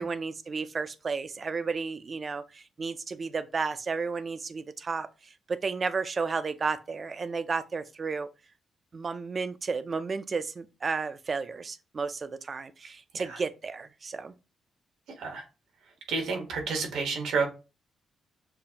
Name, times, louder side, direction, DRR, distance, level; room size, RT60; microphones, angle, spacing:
voice 1, 0.0-5.1 5.5-8.3 8.9-14.3, right 4 dB, 30° right, 0.4 m, -32 dB
voice 2, 16.1-17.5, right 4 dB, 85° right, 1.1 m, -30 dB
6.7 x 2.5 x 2.8 m
wide cardioid pair, 160°, 0 cm